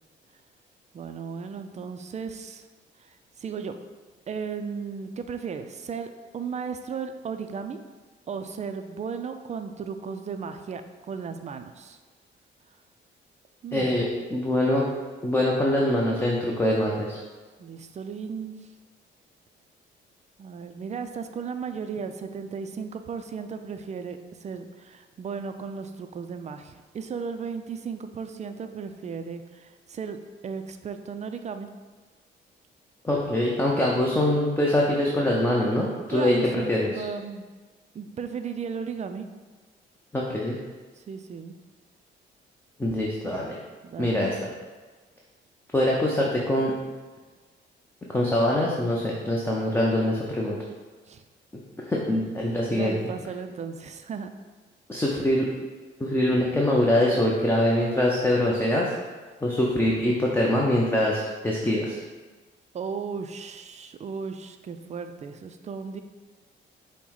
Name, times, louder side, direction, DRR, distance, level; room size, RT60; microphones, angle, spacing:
voice 1, 0.9-2.6 3.0-3.7 4.3-7.8 8.3-10.8 11.1-12.0 13.6-14.0 17.6-18.6 20.4-30.2 30.4-31.7 36.1-37.4 37.9-39.3 41.0-41.5 43.8-44.4 51.1-51.2 52.7-54.3 62.7-66.0, right 6 dB, 35° right, 8 dB, 0.4 m, -35 dB
voice 2, 13.7-14.9 15.2-17.2 33.0-37.0 40.1-40.6 42.8-43.6 44.0-44.5 45.7-46.7 48.1-50.6 51.9-52.9 54.9-55.5 56.0-58.9 59.4-62.0, left 1 dB, 10° left, -3 dB, 0.6 m, -24 dB
5.3 x 2.1 x 4.6 m, 1.3 s
cardioid pair, 90°, 20 cm